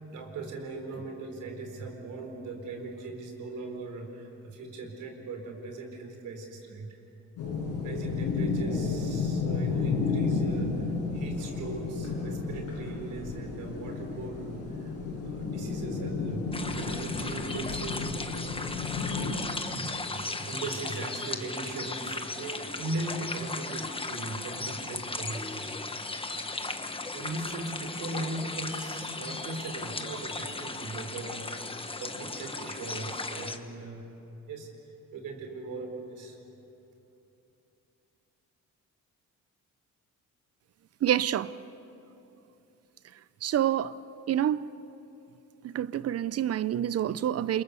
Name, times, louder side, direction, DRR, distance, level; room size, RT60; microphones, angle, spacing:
voice 1, 0.1-6.9 7.8-10.9 11.1-18.1 19.7-25.7 27.1-31.4 32.0-34.0 34.5-34.7 35.1-36.4, right 2 dB, 80° right, 4.4 m, -39 dB
sound 1, 7.4-19.3, left 4 dB, 90° left, 5.8 m, -32 dB
sound 2, 16.5-33.6, left 3 dB, 20° left, 1.3 m, -36 dB
voice 2, 41.0-41.5 43.4-43.9 44.3-44.7 45.6-47.6, right 10 dB, 55° right, 0.7 m, -27 dB
28.5 x 22.0 x 7.0 m
cardioid pair, 90°, 30 cm